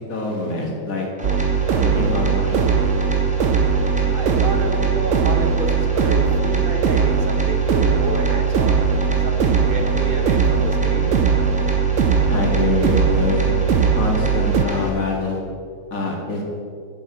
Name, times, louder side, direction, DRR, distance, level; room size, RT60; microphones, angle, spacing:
voice 1, 0.1-1.1 1.8-2.6 12.3-13.5 13.9-15.4 15.9-16.4, left 3 dB, 85° left, 0 dB, 2.6 m, -25 dB
sound 1, 1.2-14.9, left 2 dB, 5° right, 1.8 m, -28 dB
sound 2, 1.2-14.7, right 7 dB, 70° right, 0.9 m, -19 dB
voice 2, 4.1-8.8 9.2-11.2, right 2 dB, 45° right, 6 dB, 1.0 m, -30 dB
9.9 x 8.3 x 7.4 m, 2.2 s
omnidirectional pair, 1.4 m